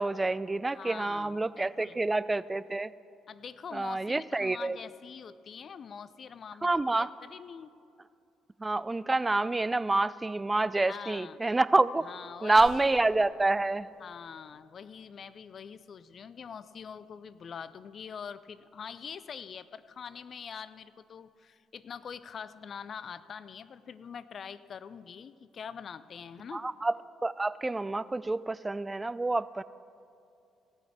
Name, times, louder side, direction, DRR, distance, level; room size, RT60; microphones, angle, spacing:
voice 1, 0.0-2.9 3.7-4.8 6.6-7.1 8.6-12.0 12.4-13.9 26.5-26.9 27.2-29.6, right 2 dB, 20° right, 18 dB, 0.3 m, -27 dB
voice 2, 0.7-2.0 3.3-7.7 10.9-11.4 12.0-12.8 14.0-26.7, left 7 dB, 50° left, 15 dB, 0.4 m, -44 dB
sound 1, 12.6-15.5, right 2 dB, 70° right, 2.9 m, -53 dB
17.0 x 6.3 x 6.9 m, 2.5 s
hypercardioid pair, 50°, 0 cm